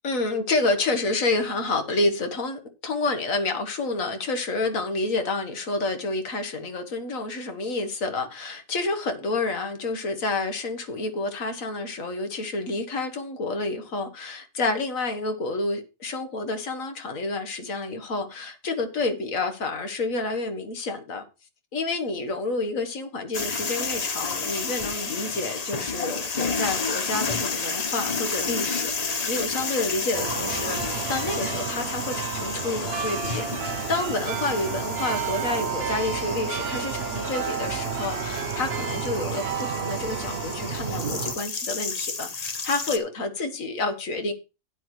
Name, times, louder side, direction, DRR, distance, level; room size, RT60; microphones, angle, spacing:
voice 1, 0.0-21.2 21.7-39.4 39.8-44.3, left 3 dB, 60° left, 1.7 m, -29 dB
sound 1, 23.3-43.0, left 4 dB, 35° left, 0.8 m, -31 dB
sound 2, 30.1-41.3, right 6 dB, 50° right, 1.0 m, -31 dB
12.0 x 9.2 x 3.1 m
omnidirectional pair, 1.6 m